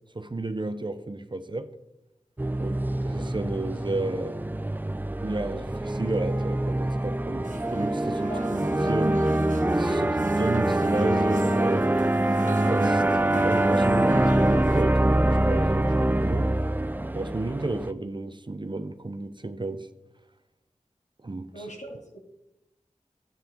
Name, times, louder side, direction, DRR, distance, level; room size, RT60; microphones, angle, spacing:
voice 1, 0.1-1.7 2.6-4.4 5.2-9.2 9.7-11.9 12.5-13.0 13.4-16.5 17.1-19.9 21.2-21.7, right 2 dB, 40° right, 0.7 m, -32 dB
sound 1, 2.4-17.9, right 1 dB, 15° right, 0.4 m, -24 dB
sound 2, 7.4-14.8, right 2 dB, 85° right, 1.2 m, -39 dB
voice 2, 21.5-22.2, right 1 dB, 70° left, 2.6 m, -39 dB
13.0 x 8.8 x 3.7 m
wide cardioid pair, 65°, 13 cm